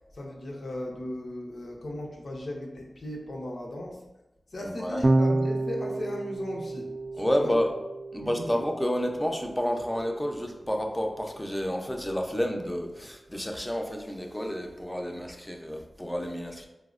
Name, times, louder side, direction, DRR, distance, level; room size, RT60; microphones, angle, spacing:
voice 1, 0.0-4.1 4.5-7.6 8.2-8.6, left 1 dB, 75° left, -1 dB, 0.6 m, -37 dB
voice 2, 4.6-5.0 7.2-7.7 8.1-16.7, equal, 15° left, 3 dB, 0.5 m, -30 dB
Electric guitar / Bass guitar, 5.0-11.4, right 2 dB, 45° right, 0.3 m, -31 dB
4.2 x 2.0 x 2.4 m, 0.94 s
cardioid pair, 40°, 0 cm